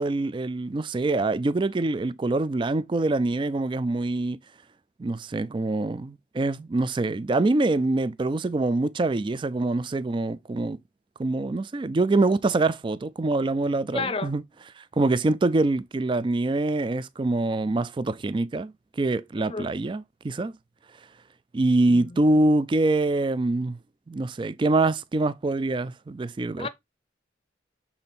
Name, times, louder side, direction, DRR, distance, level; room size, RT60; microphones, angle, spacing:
voice 1, 0.0-4.4 5.0-10.8 11.2-14.4 14.8-18.7 19.0-20.5 21.5-23.8 24.1-26.7, right 2 dB, 25° right, 0.3 m, -25 dB
voice 2, 13.9-14.3 19.4-19.7 21.8-22.2 26.6-26.7, left 4 dB, 30° left, 0.6 m, -32 dB
7.2 x 3.8 x 4.1 m
head